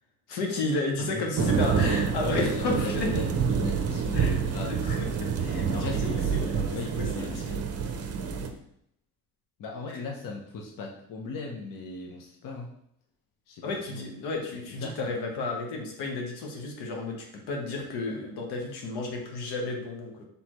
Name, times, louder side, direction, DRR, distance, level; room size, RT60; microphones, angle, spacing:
voice 1, 0.3-3.1 4.1-7.5 9.9-10.0 13.6-20.2, left 2 dB, 80° left, 1 dB, 1.1 m, -32 dB
voice 2, 1.0-1.5 2.2-4.7 5.7-7.9 9.6-12.7 13.5-14.1 14.7-15.0, left 4 dB, 55° left, 1 dB, 0.9 m, -38 dB
sound 1, 1.4-8.5, right 6 dB, 40° right, 0.6 m, -27 dB
4.2 x 3.5 x 3.0 m, 0.73 s
supercardioid pair, 80°, 39 cm